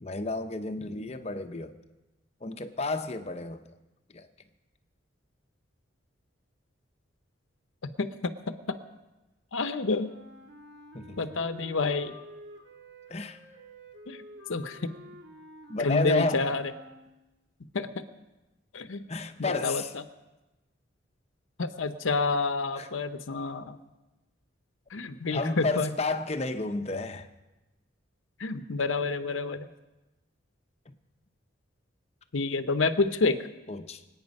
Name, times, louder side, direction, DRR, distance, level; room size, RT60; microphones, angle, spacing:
voice 1, 0.0-1.7 2.4-3.6 4.1-4.3 10.9-11.2 13.1-13.4 15.7-16.6 19.1-19.9 22.8-22.9 25.3-27.3 33.7-34.0, left 3 dB, 30° left, 8 dB, 0.7 m, -31 dB
voice 2, 9.5-10.1 11.2-12.1 14.1-14.2 14.5-14.8 15.8-16.6 17.7-18.0 18.7-19.0 19.5-20.0 21.6-23.8 24.9-25.9 28.4-29.7 32.3-33.4, left 3 dB, 85° left, 9 dB, 0.8 m, -28 dB
Wind instrument woodwind instrument, 10.0-17.4, equal, 60° right, 1.9 m, -50 dB
25.0 x 8.9 x 5.3 m, 1.1 s
head